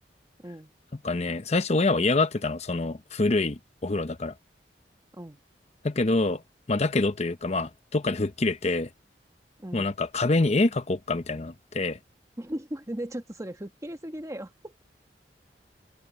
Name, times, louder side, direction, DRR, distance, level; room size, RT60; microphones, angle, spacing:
voice 1, 1.0-4.3 5.8-6.4 6.7-8.9 9.7-12.0, left 2 dB, 40° left, 0.8 m, -26 dB
voice 2, 9.6-9.9 12.4-14.8, right 1 dB, 20° right, 1.3 m, -37 dB
open air
head